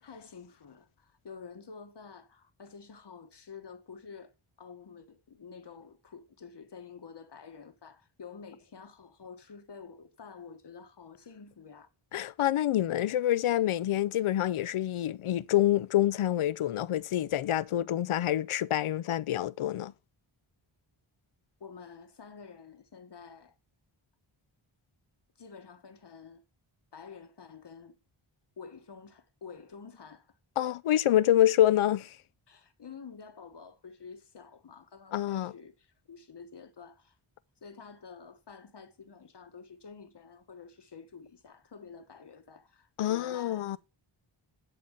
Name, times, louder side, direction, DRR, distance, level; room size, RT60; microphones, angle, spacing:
voice 1, 0.0-4.3 4.6-11.9 21.6-23.5 25.4-26.4 26.9-28.0 28.6-30.4 32.5-37.2 37.6-43.8, left 5 dB, 55° left, 1.1 m, -49 dB
voice 2, 12.1-19.9 30.6-32.1 35.1-35.5 43.0-43.8, left 12 dB, 85° left, 0.6 m, -27 dB
11.0 x 4.2 x 6.2 m
wide cardioid pair, 95°, 49 cm